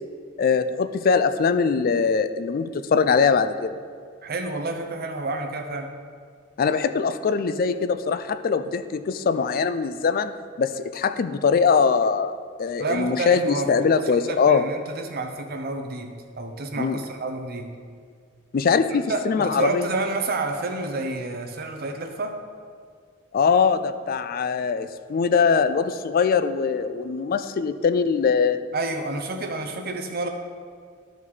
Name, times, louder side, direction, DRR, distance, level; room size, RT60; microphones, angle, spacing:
voice 1, 0.4-3.8 6.6-14.6 16.8-17.0 18.5-19.9 23.3-28.6, left 5 dB, 45° left, 11 dB, 0.4 m, -22 dB
voice 2, 4.2-5.9 12.8-13.7 14.1-17.7 19.1-22.4 28.7-30.3, right 2 dB, 50° right, 4 dB, 0.8 m, -29 dB
11.5 x 5.0 x 4.1 m, 2.1 s
head